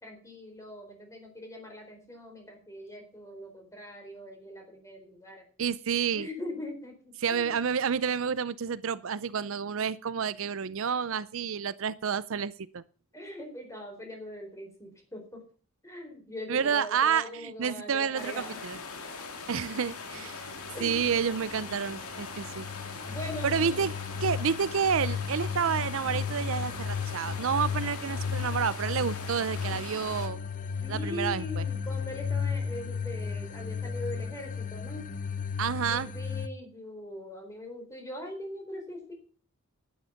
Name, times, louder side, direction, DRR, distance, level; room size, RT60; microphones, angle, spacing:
voice 1, 0.0-5.4 6.1-7.5 13.1-15.4 15.8-18.6 20.7-21.1 23.0-23.8 29.6-29.8 30.8-35.1 35.9-39.1, left 1 dB, 15° left, 2 dB, 4.4 m, -41 dB
voice 2, 5.6-6.3 7.2-12.8 16.5-18.8 19.5-20.5 20.8-22.7 23.4-23.9 24.2-30.4 30.9-31.7 35.6-36.1, right 7 dB, 65° right, 17 dB, 0.5 m, -29 dB
sound 1, 18.2-30.3, left 4 dB, 85° left, 2.2 m, -41 dB
sound 2, 20.2-36.5, left 6 dB, 35° left, 0.6 m, -35 dB
11.5 x 9.6 x 5.8 m, 0.40 s
head